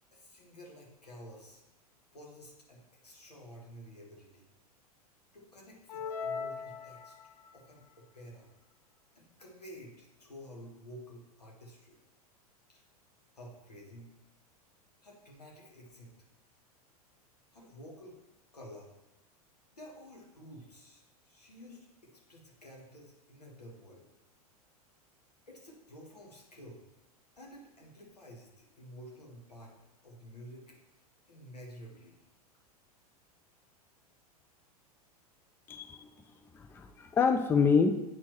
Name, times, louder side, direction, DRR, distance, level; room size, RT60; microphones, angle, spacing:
voice 1, 0.1-1.6 2.1-4.5 5.3-7.2 7.5-8.5 9.1-12.0 12.7-12.8 13.3-14.1 15.0-16.1 17.5-18.2 18.5-18.9 19.7-24.1 25.5-26.8 27.4-29.8 30.0-30.8 31.3-32.2, equal, 90° left, -1 dB, 1.4 m, -51 dB
sound 1, 5.9-7.6, left 5 dB, 70° left, 0.5 m, -39 dB
voice 2, 35.7-36.1 36.5-37.9, left 5 dB, 10° left, 8 dB, 0.3 m, -26 dB
8.5 x 4.3 x 3.0 m, 0.93 s
figure-of-eight pair, 90°, 20 cm